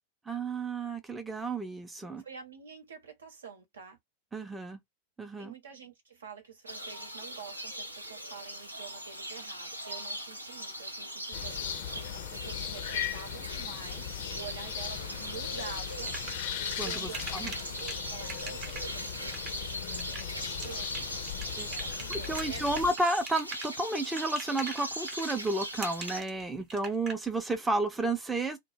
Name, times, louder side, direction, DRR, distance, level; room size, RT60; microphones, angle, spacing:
voice 1, 0.3-2.2 4.3-4.8 5.2-5.5 16.8-17.5 21.6-21.7 22.1-28.6, right 2 dB, 10° right, 0.5 m, -32 dB
voice 2, 2.2-4.0 5.4-16.1 16.8-17.4 18.1-21.0 21.5-22.6, right 6 dB, 70° right, 0.9 m, -48 dB
sound 1, 6.7-26.2, equal, 85° right, 0.5 m, -40 dB
sound 2, 11.3-22.9, left 11 dB, 50° left, 0.4 m, -38 dB
sound 3, 15.6-27.1, right 3 dB, 30° right, 0.8 m, -42 dB
2.1 x 2.0 x 3.1 m
figure-of-eight pair, 90°, 0 cm